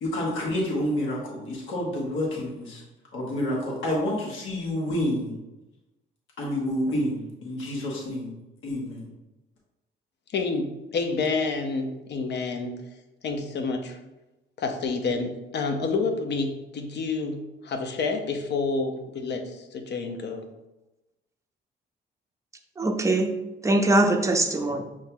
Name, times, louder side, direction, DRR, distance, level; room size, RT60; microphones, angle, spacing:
voice 1, 0.0-2.8 3.1-5.4 6.4-8.3 8.6-9.1, left 1 dB, 80° left, -3 dB, 1.2 m, -29 dB
voice 2, 10.3-12.8 13.2-14.0 14.6-20.5, left 4 dB, 60° left, 5 dB, 0.7 m, -29 dB
voice 3, 22.8-24.8, right 2 dB, 15° right, 4 dB, 0.5 m, -22 dB
5.5 x 3.1 x 2.2 m, 1.0 s
cardioid pair, 90°, 20 cm